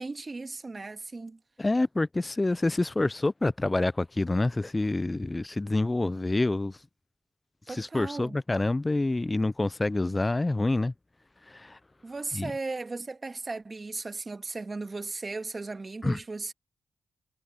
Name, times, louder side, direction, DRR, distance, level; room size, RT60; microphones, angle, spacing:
voice 1, 0.0-1.4 7.7-8.4 12.0-16.5, right 3 dB, 35° right, 1.6 m, -36 dB
voice 2, 1.6-6.8 7.7-10.9 11.5-11.8 12.3-12.5 16.0-16.2, left 2 dB, 25° left, 0.4 m, -27 dB
supercardioid pair, 50°, 0 cm